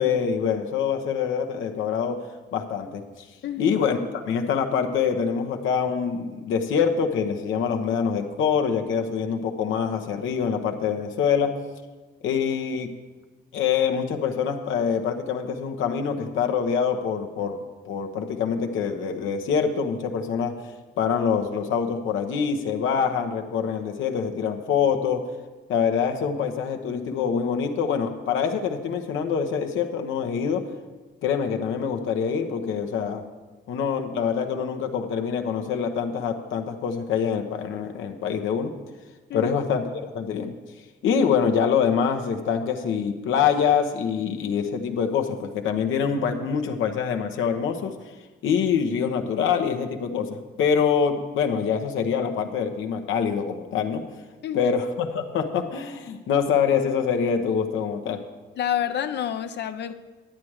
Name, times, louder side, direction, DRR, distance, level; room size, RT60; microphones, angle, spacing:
voice 1, 0.0-2.2 2.5-3.0 3.6-11.5 12.2-12.9 13.5-20.5 21.0-25.2 25.7-30.7 31.2-33.2 33.7-38.7 39.3-40.5 41.0-47.9 48.4-50.3 50.6-54.0 54.5-58.2, left 7 dB, 80° left, 5 dB, 0.9 m, -25 dB
voice 2, 3.4-3.8 39.3-39.5 54.4-54.7 58.6-59.9, left 10 dB, 60° left, 8 dB, 0.6 m, -28 dB
10.0 x 8.8 x 4.7 m, 1.3 s
cardioid pair, 90°, 20 cm